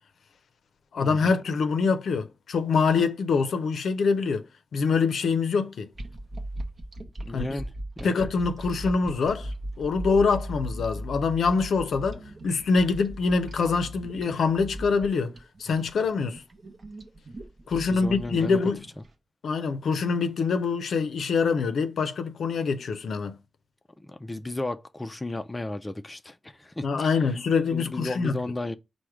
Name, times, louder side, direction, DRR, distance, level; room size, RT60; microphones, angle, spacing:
voice 1, 0.9-4.5 4.7-5.9 7.3-7.5 8.0-15.3 15.6-16.4 17.7-18.8 19.4-23.4 26.8-28.3, left 4 dB, 80° left, 0.5 m, -25 dB
sound 1, 5.9-19.1, right 1 dB, 40° right, 0.7 m, -38 dB
voice 2, 7.2-7.7 8.0-8.2 17.9-18.6 24.0-27.4 27.7-28.8, left 2 dB, 15° left, 0.3 m, -34 dB
4.8 x 2.1 x 4.5 m
wide cardioid pair, 110°, 0 cm